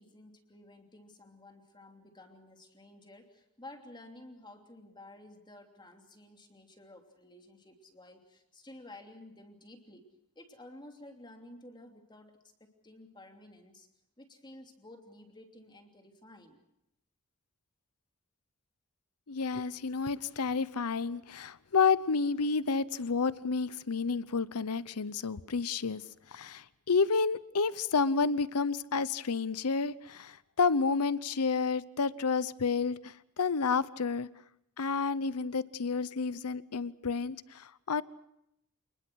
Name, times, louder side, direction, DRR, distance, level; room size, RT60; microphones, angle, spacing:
voice 1, 0.0-10.1 10.3-13.9 14.2-16.6, left 1 dB, 20° left, 4 dB, 3.0 m, -53 dB
voice 2, 19.3-26.0 26.3-34.3 34.8-38.0, left 4 dB, 90° left, 18 dB, 0.8 m, -30 dB
28.0 x 20.5 x 6.3 m, 0.80 s
head